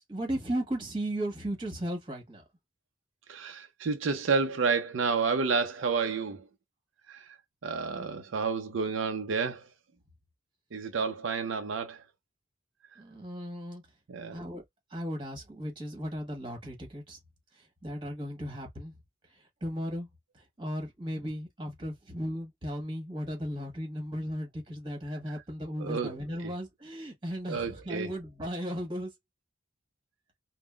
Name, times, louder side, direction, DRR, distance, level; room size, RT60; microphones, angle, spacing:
voice 1, 0.1-2.4 13.0-13.8 14.3-14.6 14.9-17.2 17.5-19.0 19.3-20.1 20.3-29.1, equal, 25° right, 1.4 m, -36 dB
voice 2, 3.3-6.5 7.1-7.3 7.6-9.7 10.7-12.0 14.1-14.4 25.8-26.2 26.4-26.5 27.5-28.1, right 5 dB, 85° right, 0.5 m, -30 dB
3.7 x 2.1 x 2.3 m
head